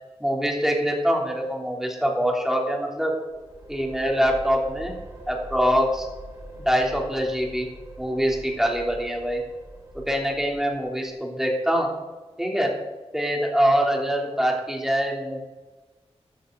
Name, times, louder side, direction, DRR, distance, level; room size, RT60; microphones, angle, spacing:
voice 1, 0.2-3.1 3.7-4.9 5.3-6.0 6.6-7.7 8.0-9.4 10.1-11.9 12.4-12.7 13.1-15.4, equal, 5° right, -1 dB, 3.2 m, -24 dB
sound 1, 3.3-11.1, right 1 dB, 25° right, 4.4 m, -43 dB
13.5 x 13.5 x 3.9 m, 1.2 s
wide cardioid pair, 95°, 11 cm